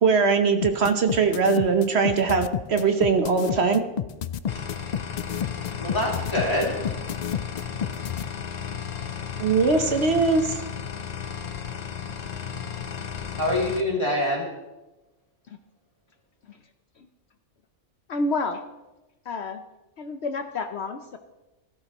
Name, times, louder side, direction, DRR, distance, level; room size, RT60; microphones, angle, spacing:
voice 1, 0.0-3.8 9.4-10.5, right 4 dB, 60° right, 6 dB, 1.2 m, -21 dB
sound 1, 0.6-8.2, left 9 dB, 80° left, 0.3 m, -30 dB
sound 2, 4.5-13.8, left 7 dB, 40° left, 0.8 m, -34 dB
voice 2, 5.8-6.8 13.4-14.5, left 1 dB, 20° left, -3 dB, 2.8 m, -25 dB
voice 3, 18.1-18.6 19.3-19.6 20.0-21.2, left 3 dB, 65° left, 7 dB, 1.0 m, -29 dB
16.5 x 13.0 x 3.0 m, 1.0 s
omnidirectional pair, 1.3 m